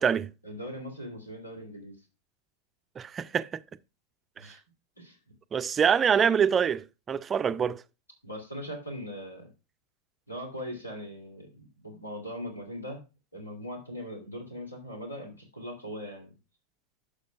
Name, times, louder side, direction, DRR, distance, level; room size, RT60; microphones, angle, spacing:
voice 1, 0.4-1.9 4.4-4.6 5.0-5.2 8.2-9.5 10.3-13.0 13.3-16.3, equal, 85° left, 2.7 m, -40 dB
voice 2, 3.0-3.5 5.5-7.8, right 7 dB, 20° right, 0.4 m, -25 dB
11.5 x 6.6 x 2.3 m
figure-of-eight pair, 90°, 0 cm